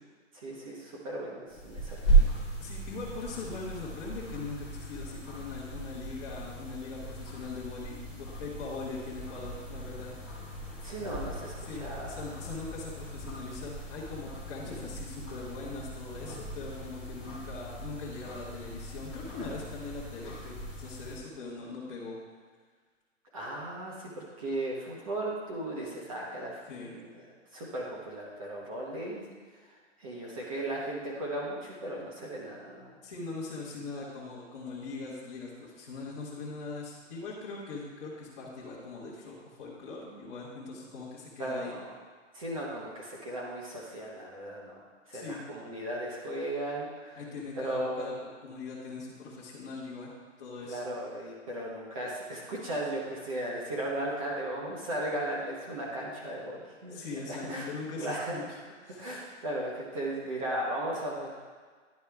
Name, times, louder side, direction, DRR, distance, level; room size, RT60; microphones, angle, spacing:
voice 1, 0.3-2.3 10.8-12.2 23.3-27.1 27.5-29.2 30.0-32.9 41.4-41.9 42.3-44.8 45.1-47.2 47.6-48.1 50.7-57.7 58.0-58.4 59.0-61.3, right 1 dB, 25° right, -4 dB, 1.0 m, -36 dB
sound 1, 1.5-21.2, right 3 dB, ahead, 0.9 m, -35 dB
voice 2, 2.6-10.1 11.6-22.2 26.7-26.9 33.0-41.7 45.1-45.4 47.2-48.1 48.4-50.1 50.4-50.8 56.8-58.4 58.8-59.0, left 3 dB, 20° left, -8 dB, 1.2 m, -41 dB
10.5 x 4.4 x 3.5 m, 1.5 s
hypercardioid pair, 170°, 38 cm